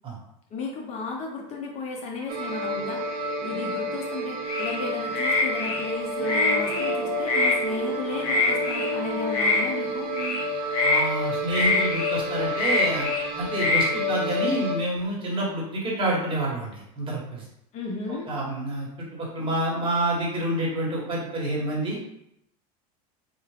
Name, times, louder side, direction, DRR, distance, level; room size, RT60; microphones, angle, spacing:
voice 1, 0.5-10.1 17.7-18.3, left 3 dB, 40° left, 0 dB, 0.7 m, -34 dB
sound 1, 2.3-14.8, left 1 dB, 55° right, 1.0 m, -30 dB
sound 2, 4.5-4.8 5.1-5.8 6.2-6.9 7.2-7.6 8.2-8.9 9.3-9.6 10.1-10.4 10.7-11.0 11.5-12.1 12.5-13.2 13.5-13.9, left 3 dB, 75° left, 0.9 m, -24 dB
sound 3, 6.1-10.5, right 3 dB, 80° right, 0.4 m, -37 dB
voice 2, 10.8-13.1 13.4-17.4 18.3-18.9 19.1-22.1, right 1 dB, 25° right, -4 dB, 1.3 m, -28 dB
3.5 x 2.4 x 3.3 m, 0.78 s
supercardioid pair, 130°, 19 cm